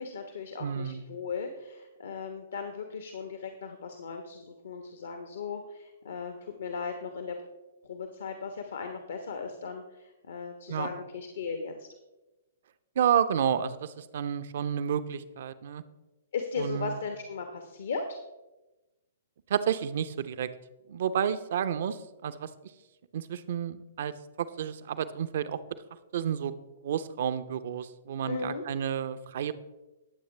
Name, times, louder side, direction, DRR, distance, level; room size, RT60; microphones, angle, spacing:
voice 1, 0.0-7.4 7.8-11.9 16.3-18.2 28.2-28.6, left 5 dB, 65° left, 5 dB, 1.2 m, -37 dB
voice 2, 0.6-1.0 10.7-10.9 13.0-15.8 16.6-17.0 19.5-20.5 20.9-22.0 22.2-22.5 23.1-24.1 24.4-25.6 26.1-26.5 26.8-29.5, right 8 dB, 55° right, 13 dB, 0.8 m, -30 dB
21.5 x 7.8 x 3.3 m, 1.1 s
figure-of-eight pair, 115°, 0 cm